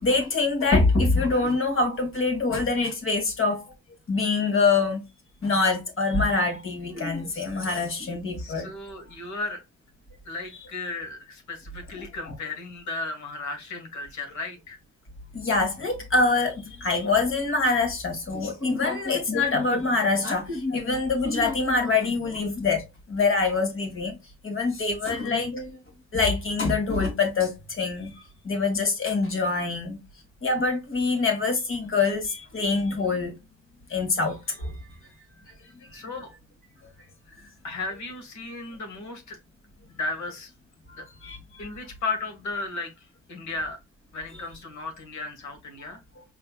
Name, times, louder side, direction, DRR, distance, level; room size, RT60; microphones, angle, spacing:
voice 1, 0.0-3.7 4.1-5.0 5.4-8.7 11.9-12.1 15.3-22.8 23.1-24.2 24.4-25.8 26.1-28.1 28.4-30.0 30.4-33.3 33.9-34.8 40.9-41.7 46.2-46.3, left 3 dB, 45° left, 1.9 m, -25 dB
voice 2, 8.4-9.6 10.2-14.8 25.1-25.2 35.9-36.3 37.6-39.4 39.9-40.5 41.0-41.1 41.6-42.9 43.3-43.8 44.1-46.0, left 3 dB, 70° left, 1.7 m, -35 dB
5.3 x 3.3 x 2.3 m
cardioid pair, 90°, 30 cm